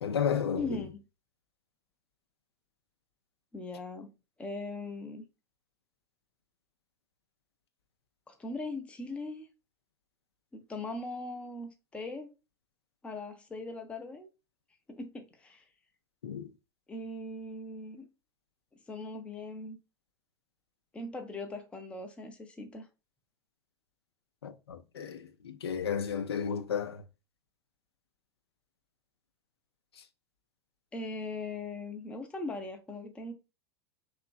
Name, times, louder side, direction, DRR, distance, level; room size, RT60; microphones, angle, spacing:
voice 1, 0.0-0.8 16.2-16.5 24.4-27.0, left 7 dB, 65° left, 0.4 m, -33 dB
voice 2, 0.5-1.0 3.5-4.1 4.4-5.2 8.3-9.5 10.5-12.3 13.0-14.3 14.9-15.6 16.9-18.1 18.9-19.8 20.9-22.9 30.9-33.3, left 2 dB, 10° left, 0.4 m, -40 dB
2.9 x 2.4 x 2.4 m
figure-of-eight pair, 90°, 14 cm